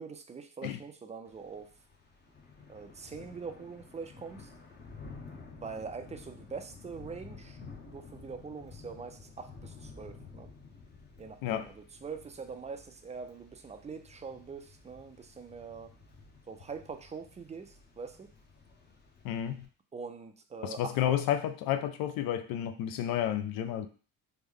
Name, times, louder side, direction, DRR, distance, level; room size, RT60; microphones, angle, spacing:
voice 1, 0.0-1.7 2.7-4.5 5.6-7.6 7.9-10.5 11.2-15.9 16.5-18.3 19.9-21.0, right 5 dB, 20° right, 0.4 m, -43 dB
Thunder / Rain, 1.3-19.7, left 4 dB, 30° left, 0.8 m, -52 dB
voice 2, 19.2-19.7 20.6-23.9, left 11 dB, 70° left, 0.5 m, -31 dB
3.2 x 2.2 x 3.6 m
cardioid pair, 95°, 36 cm